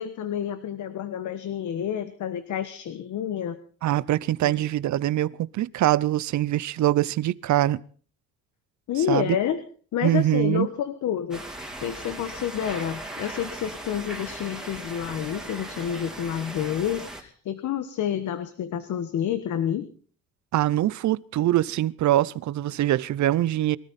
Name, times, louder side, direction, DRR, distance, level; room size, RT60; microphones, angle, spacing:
voice 1, 0.0-3.6 4.4-4.6 8.9-9.6 9.9-11.5 11.8-19.9, left 9 dB, 75° left, 1.4 m, -29 dB
voice 2, 3.8-7.8 9.0-9.4 10.0-10.7 20.5-23.8, right 14 dB, 70° right, 0.7 m, -23 dB
sound 1, 11.3-17.2, right 1 dB, ahead, 3.2 m, -38 dB
23.5 x 13.5 x 4.2 m
cardioid pair, 90°, 30 cm